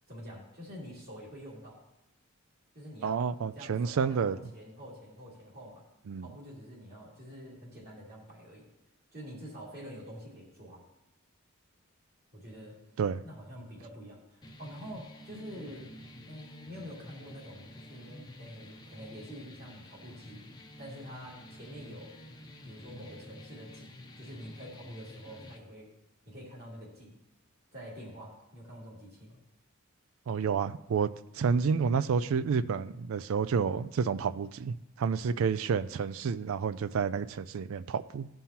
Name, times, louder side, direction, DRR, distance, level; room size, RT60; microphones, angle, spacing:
voice 1, 0.1-1.8 2.7-3.3 3.5-5.8 6.2-8.6 9.1-10.8 12.3-12.8 13.2-15.9 16.3-20.4 20.8-22.1 22.6-25.9 26.2-27.2 27.7-29.4, equal, 50° right, -5 dB, 2.7 m, -47 dB
voice 2, 3.0-4.4 6.1-6.3 13.0-13.2 30.3-31.1 31.3-38.3, right 6 dB, 75° right, 14 dB, 0.4 m, -29 dB
sound 1, 14.4-25.6, left 1 dB, 20° left, 0.6 m, -50 dB
14.5 x 5.5 x 2.9 m, 0.89 s
head